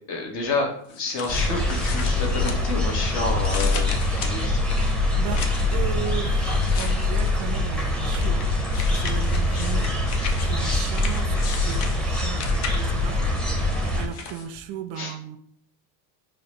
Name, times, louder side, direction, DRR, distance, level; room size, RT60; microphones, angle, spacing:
voice 1, 0.1-0.7 1.0-3.9 4.2-4.6 15.0-15.1, left 3 dB, 55° left, 1 dB, 1.2 m, -29 dB
sound 1, 0.9-3.0 3.4-5.8 6.5-7.5 8.1-13.1 13.7-14.5, left 5 dB, 75° left, 0.8 m, -36 dB
sound 2, 1.3-14.1, left 2 dB, ahead, 0.6 m, -24 dB
voice 2, 5.1-8.5 8.9-10.0 10.4-13.3 14.0-15.4, right 9 dB, 50° right, 9 dB, 0.5 m, -35 dB
4.7 x 2.1 x 3.1 m, 0.64 s
supercardioid pair, 95°, 45 cm